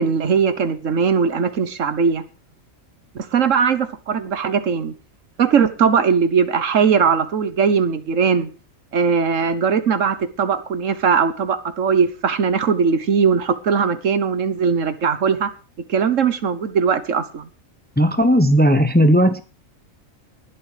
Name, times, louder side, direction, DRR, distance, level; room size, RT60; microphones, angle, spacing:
voice 1, 0.0-2.2 3.1-4.9 5.4-8.5 8.9-15.5 15.9-17.5, right 6 dB, 65° right, 1.4 m, -19 dB
voice 2, 18.0-19.4, equal, 10° left, 0.8 m, -15 dB
19.5 x 7.7 x 5.0 m
omnidirectional pair, 1.4 m